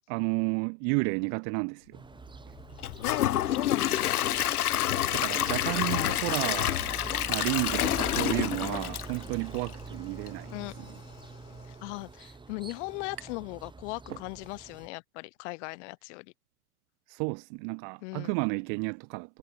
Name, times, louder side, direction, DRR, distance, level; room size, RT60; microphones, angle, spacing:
voice 1, 0.1-2.0 5.1-6.8 7.3-10.9 17.1-19.4, right 40 dB or more, 30° right, 0.4 m, -32 dB
sound 1, 1.9-14.9, right 4 dB, 10° right, 2.1 m, -44 dB
Gurgling / Toilet flush / Trickle dribble, 2.8-9.8 10.3-10.4 10.8-10.9, left 12 dB, 70° left, 1.2 m, -28 dB
voice 2, 3.0-4.2 5.9-6.2 8.6-8.9 10.5-10.7 11.6-16.3 18.0-18.3, left 26 dB, 50° left, 1.8 m, -38 dB
sound 2, 13.2-13.6 13.9-14.8, right 8 dB, 80° right, 5.4 m, -47 dB
hypercardioid pair, 100°, 46 cm